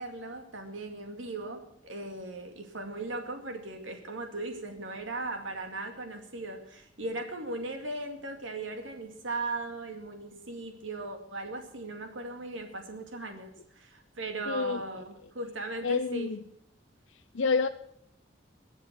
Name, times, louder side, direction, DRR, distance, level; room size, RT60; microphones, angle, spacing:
voice 1, 0.0-16.3, right 2 dB, 80° right, 5 dB, 2.2 m, -38 dB
voice 2, 14.5-14.8 15.8-16.4 17.3-17.7, left 4 dB, 85° left, 8 dB, 0.7 m, -28 dB
22.0 x 7.6 x 6.7 m, 0.72 s
head